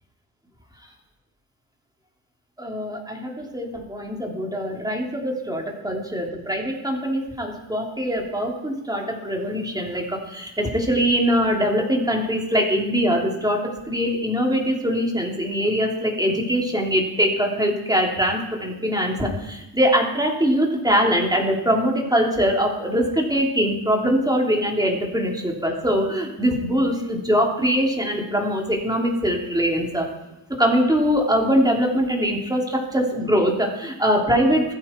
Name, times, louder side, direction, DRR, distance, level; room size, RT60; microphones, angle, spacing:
voice 1, 2.6-30.1 30.6-34.7, equal, 10° right, -1 dB, 3.1 m, -22 dB
17.5 x 14.5 x 4.5 m, 0.94 s
cardioid pair, 105°, 49 cm